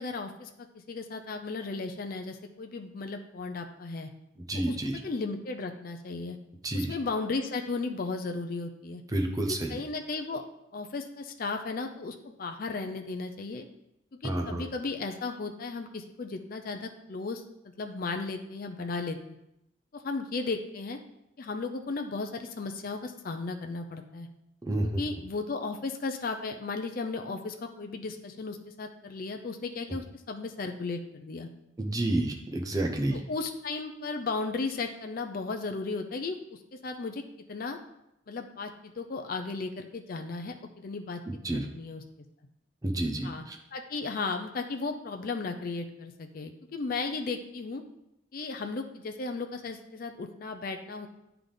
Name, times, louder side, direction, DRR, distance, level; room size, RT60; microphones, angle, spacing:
voice 1, 0.0-4.1 4.5-4.8 5.0-6.4 6.7-9.0 9.5-10.4 10.7-13.7 14.2-17.4 17.8-19.2 19.9-21.0 21.4-24.3 24.8-31.5 33.1-37.2 37.5-37.8 38.3-41.2 41.5-42.0 43.2-43.4 43.7-47.8 48.3-51.1, left 3 dB, 45° left, 5 dB, 0.4 m, -35 dB
voice 2, 4.5-5.0 6.6-6.9 9.1-9.8 14.2-14.6 24.6-25.0 31.8-33.2 41.4-41.6 42.8-43.6, right 1 dB, 20° right, 2 dB, 0.6 m, -29 dB
8.8 x 3.4 x 3.8 m, 0.83 s
head